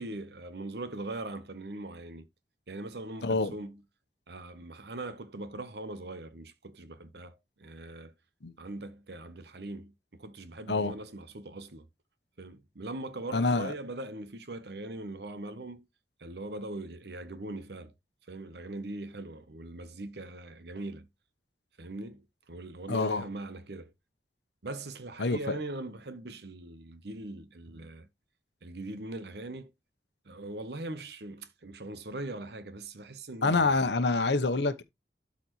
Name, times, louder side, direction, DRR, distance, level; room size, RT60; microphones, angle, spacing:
voice 1, 0.0-2.3 2.7-3.8 4.3-8.1 8.6-11.9 12.4-15.8 16.2-17.9 18.3-21.1 21.8-23.9 24.6-28.1 28.6-29.7 30.2-33.9, right 2 dB, 70° right, 0.9 m, -41 dB
voice 2, 3.2-3.5 8.4-8.5 10.7-10.9 13.3-13.7 22.9-23.3 25.2-25.6 33.4-34.8, left 3 dB, 80° left, 0.9 m, -26 dB
12.5 x 4.2 x 3.1 m
head